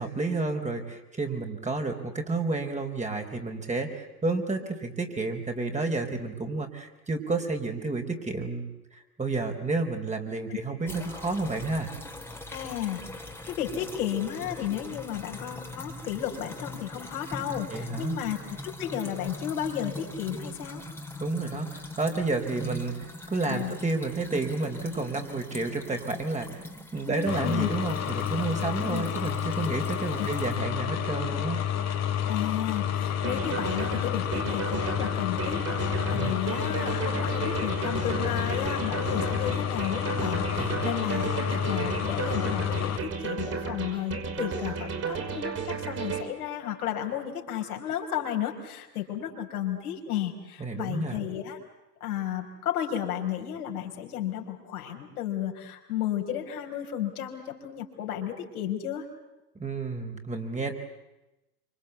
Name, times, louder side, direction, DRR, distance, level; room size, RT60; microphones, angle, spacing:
voice 1, 0.0-8.7 9.2-11.9 17.7-18.2 21.2-26.6 26.9-31.7 36.1-36.4 40.6-40.9 50.6-51.2 59.6-60.7, right 3 dB, 15° right, 4 dB, 4.1 m, -30 dB
sound 1, 10.9-30.6, left 1 dB, 5° left, 3.5 m, -42 dB
voice 2, 12.5-18.4 18.8-20.8 23.4-23.7 27.0-27.7 28.8-29.0 30.2-30.3 32.3-51.6 52.0-59.1, left 10 dB, 65° left, 2 dB, 5.0 m, -33 dB
sound 2, 27.2-43.0, left 9 dB, 35° left, 3.0 m, -30 dB
sound 3, 33.2-46.2, right 5 dB, 30° right, 5.9 m, -33 dB
28.0 x 26.0 x 8.2 m, 0.97 s
figure-of-eight pair, 80°, 47 cm